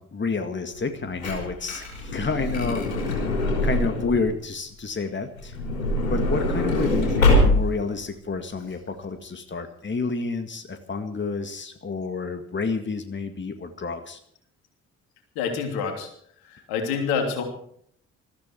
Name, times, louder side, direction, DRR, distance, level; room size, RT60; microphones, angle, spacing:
voice 1, 0.0-3.3 3.6-5.6 6.1-14.2, left 4 dB, 30° left, 7 dB, 2.0 m, -29 dB
Truck / Door, 0.8-4.3 5.4-7.9 8.6-8.7 8.9-9.0, left 1 dB, 90° left, 4.0 m, -23 dB
voice 2, 15.3-16.1 16.4-17.4, left 6 dB, 70° left, 4 dB, 3.2 m, -27 dB
20.5 x 14.5 x 4.6 m, 0.64 s
figure-of-eight pair, 45°, 39 cm